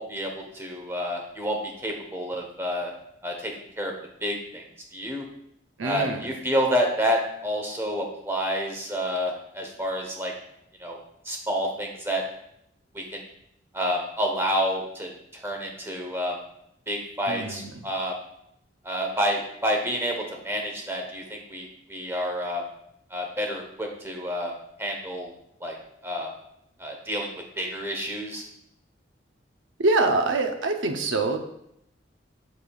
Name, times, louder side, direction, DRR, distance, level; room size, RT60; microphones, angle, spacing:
voice 1, 0.0-2.9 3.2-3.9 4.2-4.6 4.9-5.2 5.8-10.3 10.8-11.0 11.2-12.2 12.9-13.2 13.7-15.1 15.4-16.4 16.9-18.1 18.8-22.6 23.1-24.5 24.8-25.3 25.6-25.8 26.0-26.3 26.8-28.4, equal, 10° right, 1 dB, 1.1 m, -29 dB
voice 2, 5.8-6.3 17.3-17.9 29.8-31.4, right 2 dB, 80° right, 5 dB, 0.8 m, -25 dB
8.5 x 6.6 x 2.4 m, 0.76 s
head